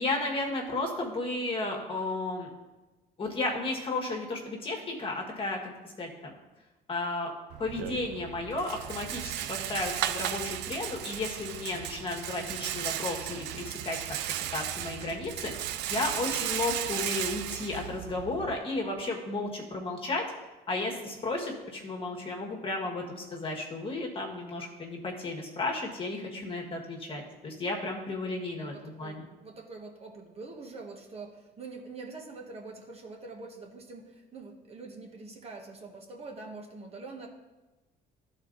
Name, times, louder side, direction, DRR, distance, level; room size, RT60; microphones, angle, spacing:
voice 1, 0.0-2.5 3.2-5.7 6.0-6.3 6.9-7.3 7.6-14.0 14.5-20.2 20.7-29.3, left 2 dB, 30° left, 0 dB, 1.6 m, -33 dB
Rattle, 7.5-18.5, right 11 dB, 85° right, 0.4 m, -35 dB
voice 2, 28.6-37.3, right 3 dB, 35° right, 1 dB, 1.3 m, -44 dB
12.0 x 4.3 x 3.9 m, 1.1 s
cardioid pair, 110°, 17 cm